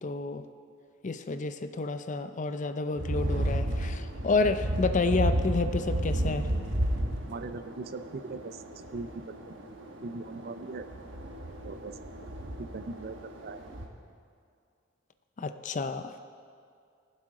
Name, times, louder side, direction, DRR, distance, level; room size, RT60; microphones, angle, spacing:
voice 1, 0.0-0.4 1.0-6.5 15.4-16.3, left 3 dB, 40° left, 10 dB, 0.5 m, -30 dB
sound 1, 3.0-13.9, right 1 dB, 70° right, 1.1 m, -33 dB
voice 2, 7.3-8.6 8.9-9.1 9.5-9.6 10.0-10.8 11.6-12.0 12.6-13.6, right 3 dB, 55° right, 11 dB, 0.5 m, -39 dB
19.0 x 7.6 x 3.8 m, 2.3 s
head